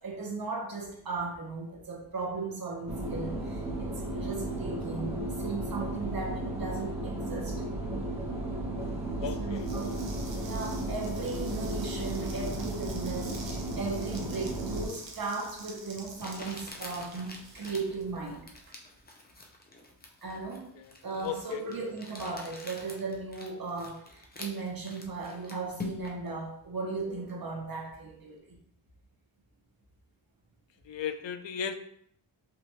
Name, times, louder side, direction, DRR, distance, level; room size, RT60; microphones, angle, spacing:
voice 1, 0.0-7.6 9.3-10.0 10.4-18.5 20.2-20.6 21.0-24.0 24.4-28.4, right 3 dB, 50° right, -1 dB, 1.1 m, -37 dB
sound 1, 2.9-14.9, right 1 dB, 15° right, 1.1 m, -34 dB
voice 2, 9.2-9.7 20.8-20.9 21.2-21.6 30.9-31.7, left 7 dB, 75° left, 9 dB, 0.5 m, -35 dB
sound 2, 9.5-18.5, right 3 dB, 75° right, 0.8 m, -48 dB
Crumpling crinkling, 15.3-15.4 16.2-26.3, left 2 dB, 20° left, 0.6 m, -46 dB
5.0 x 2.5 x 3.0 m, 0.67 s
wide cardioid pair, 105°, 44 cm